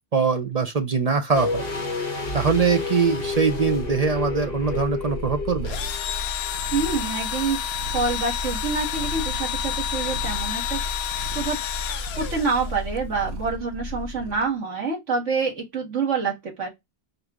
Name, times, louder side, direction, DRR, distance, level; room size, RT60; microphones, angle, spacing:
voice 1, 0.1-1.6 2.3-5.8, right 5 dB, 40° right, 0.6 m, -22 dB
sound 1, 1.3-6.2 6.4-6.5, left 3 dB, 50° left, 1.1 m, -30 dB
Purr, 3.3-14.5, left 1 dB, 60° right, 1.2 m, -34 dB
Engine / Drill, 5.6-13.0, left 10 dB, 65° left, 0.7 m, -30 dB
voice 2, 6.7-7.6 7.9-10.8 11.3-11.6 12.2-16.7, right 4 dB, 85° right, 2.0 m, -26 dB
4.8 x 2.7 x 3.6 m
omnidirectional pair, 1.2 m